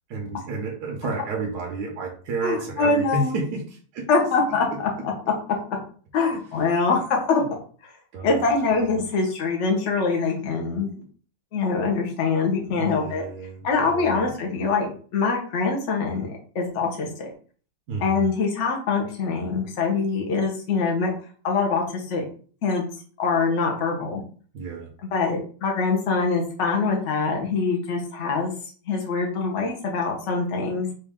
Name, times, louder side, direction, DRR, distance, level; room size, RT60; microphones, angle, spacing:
voice 1, 0.1-4.1 4.7-4.8 8.1-8.4 12.7-13.6 13.9-14.3 17.9-18.2 24.5-24.9, right 3 dB, 65° right, 0 dB, 1.2 m, -31 dB
voice 2, 2.4-3.4 4.1-4.7 5.0-5.1 6.1-7.4 7.8-7.9 8.2-10.9 11.5-13.2 13.6-17.3 18.0-21.1 21.4-22.2 22.6-22.9 23.2-24.2 25.0-28.5 28.9-30.9, left 4 dB, 50° left, 0 dB, 1.1 m, -24 dB
4.1 x 2.6 x 3.5 m, 0.43 s
omnidirectional pair, 2.0 m